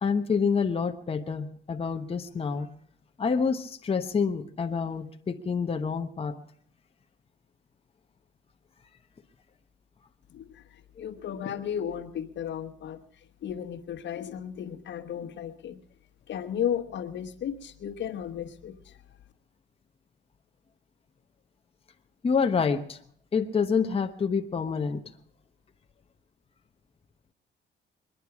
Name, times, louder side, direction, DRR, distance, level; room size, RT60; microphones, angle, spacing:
voice 1, 0.0-2.7 3.2-6.3 11.0-11.1 22.2-23.0 23.3-25.0, left 5 dB, 30° left, 0.9 m, -27 dB
voice 2, 11.0-13.0 13.4-15.8 16.3-18.8, left 9 dB, 65° left, 1.3 m, -34 dB
23.0 x 10.0 x 6.0 m
cardioid pair, 90°, 20 cm